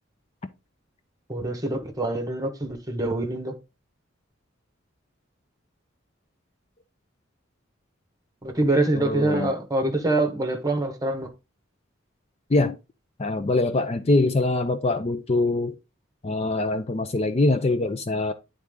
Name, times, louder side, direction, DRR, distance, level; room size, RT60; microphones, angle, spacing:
voice 1, 1.3-3.5 8.4-11.3, right 2 dB, 20° right, 1.2 m, -25 dB
voice 2, 9.0-9.5 12.5-12.8 13.2-15.8 16.2-18.3, left 2 dB, 30° left, 0.5 m, -23 dB
9.7 x 3.7 x 3.7 m
head